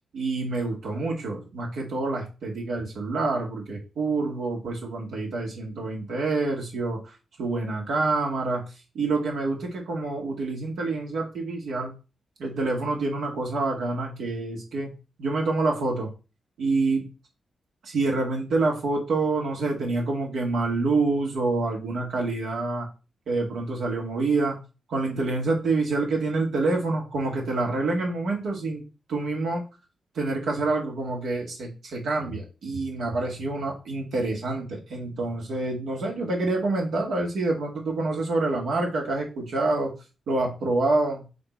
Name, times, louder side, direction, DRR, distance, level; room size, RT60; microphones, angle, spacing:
voice 1, 0.1-7.1 7.4-8.6 8.9-11.9 12.4-14.9 15.2-16.1 16.6-17.0 17.8-22.9 23.3-24.6 24.9-28.8 29.1-29.6 30.1-39.9 40.3-41.2, right 3 dB, 80° right, -1 dB, 2.0 m, -27 dB
7.4 x 2.8 x 4.5 m, 0.30 s
cardioid pair, 70°, 0 cm